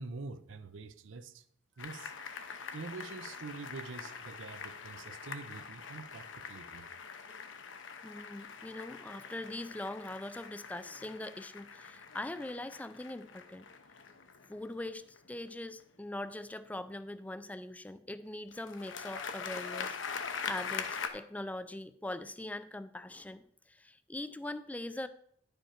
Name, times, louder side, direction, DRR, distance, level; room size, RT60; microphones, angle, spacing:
voice 1, 0.0-1.4 1.8-2.1 2.7-6.9, right 3 dB, 80° right, 13 dB, 0.6 m, -45 dB
sound 1, 1.8-15.8 18.5-21.1, left 6 dB, 70° left, 0.8 m, -43 dB
voice 2, 8.0-13.7 14.5-20.0 20.4-25.1, left 1 dB, 10° left, 13 dB, 0.3 m, -42 dB
10.0 x 5.2 x 4.4 m, 0.65 s
head